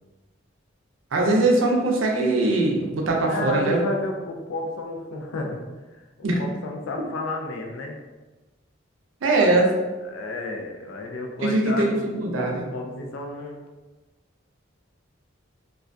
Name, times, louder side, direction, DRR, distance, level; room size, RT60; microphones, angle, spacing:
voice 1, 1.1-3.8 6.2-6.4 9.2-9.7 11.4-12.6, right 2 dB, 80° right, 0 dB, 0.5 m, -21 dB
voice 2, 3.3-5.6 5.9-8.0 9.3-9.6 10.0-13.6, left 2 dB, 80° left, 2 dB, 0.4 m, -32 dB
2.3 x 2.2 x 2.5 m, 1.2 s
head